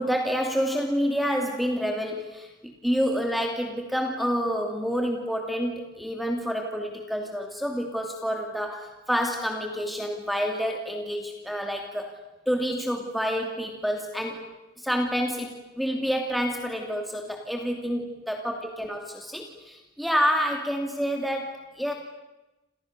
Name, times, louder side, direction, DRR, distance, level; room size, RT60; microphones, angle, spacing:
voice 1, 0.0-12.1 12.5-14.5 14.8-21.9, equal, ahead, 2 dB, 2.8 m, -28 dB
30.0 x 28.0 x 6.8 m, 1.0 s
head